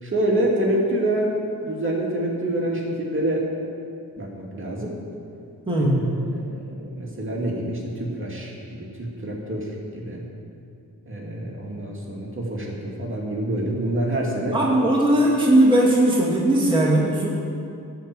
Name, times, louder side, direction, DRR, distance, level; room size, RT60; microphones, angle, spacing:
voice 1, 0.0-3.4 4.2-4.9 5.8-5.9 6.2-10.3 11.1-14.6, right 1 dB, 30° right, -3 dB, 2.5 m, -27 dB
voice 2, 5.7-6.1 14.5-17.3, right 1 dB, 15° right, -4 dB, 2.2 m, -18 dB
12.5 x 4.7 x 8.2 m, 2.5 s
supercardioid pair, 60°, 38 cm